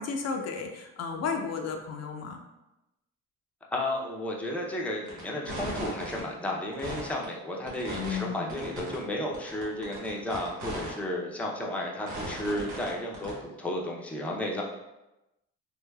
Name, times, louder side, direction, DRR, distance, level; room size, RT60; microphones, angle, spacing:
voice 1, 0.0-2.4 8.0-8.5, left 5 dB, 60° left, 3 dB, 0.5 m, -33 dB
voice 2, 3.7-14.6, left 1 dB, 5° left, -2 dB, 0.5 m, -33 dB
sound 1, 5.1-5.2 5.5-6.2 6.7-7.2 7.7-8.2 8.5-9.0 9.3-10.9 11.3-11.4 12.1-12.9 13.1-13.3, right 1 dB, 85° right, 1.2 m, -37 dB
3.3 x 3.0 x 2.3 m, 0.95 s
cardioid pair, 90°, 30 cm